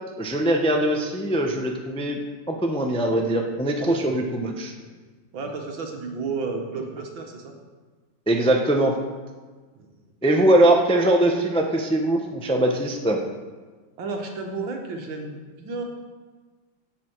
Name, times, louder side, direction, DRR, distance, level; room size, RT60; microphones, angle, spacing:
voice 1, 0.2-2.2 2.5-4.7 8.3-8.9 10.2-13.2, right 1 dB, 5° left, 2 dB, 0.5 m, -21 dB
voice 2, 3.9-4.2 5.3-7.5 9.8-9.9 14.0-15.8, right 4 dB, 85° right, 2 dB, 2.2 m, -32 dB
16.5 x 7.0 x 4.7 m, 1.4 s
omnidirectional pair, 2.1 m